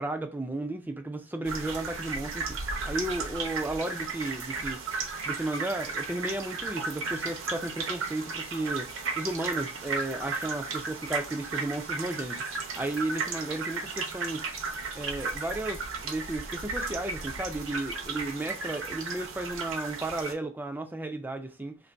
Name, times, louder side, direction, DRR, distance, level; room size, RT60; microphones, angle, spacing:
voice 1, 0.0-4.8 5.2-12.4 12.7-14.4 14.9-21.8, right 2 dB, 10° right, 0.3 m, -34 dB
sound 1, 1.4-20.3, right 4 dB, 65° right, 0.7 m, -35 dB
3.0 x 2.6 x 4.4 m
head